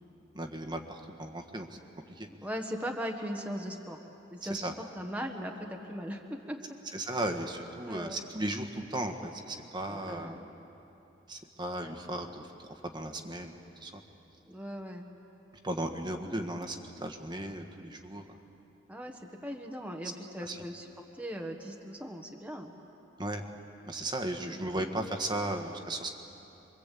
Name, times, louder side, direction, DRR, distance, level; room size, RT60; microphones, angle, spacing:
voice 1, 0.3-1.7 2.2-2.3 4.5-4.7 6.9-10.3 11.3-13.5 13.8-14.0 15.6-18.2 20.5-20.6 23.2-23.4 23.8-26.1, right 1 dB, 25° right, 4 dB, 1.6 m, -36 dB
voice 2, 2.4-4.0 4.3-6.6 7.9-8.2 9.9-10.5 14.5-15.1 18.9-20.9 21.1-22.7 24.3-24.9, equal, 5° right, 1 dB, 1.5 m, -39 dB
27.5 x 23.5 x 8.5 m, 2.9 s
head